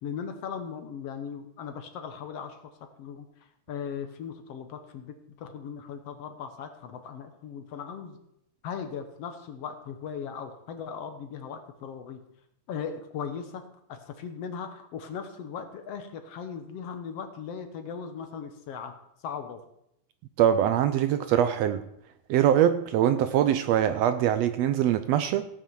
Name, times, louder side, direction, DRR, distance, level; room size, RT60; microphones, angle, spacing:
voice 1, 0.0-2.7 3.0-3.3 3.7-8.2 8.6-12.2 12.7-13.6 13.9-18.9 19.2-19.6, left 7 dB, 65° left, 1.9 m, -38 dB
voice 2, 20.4-21.8 22.3-25.5, right 10 dB, 75° right, 1.6 m, -23 dB
16.5 x 8.7 x 4.7 m
omnidirectional pair, 3.4 m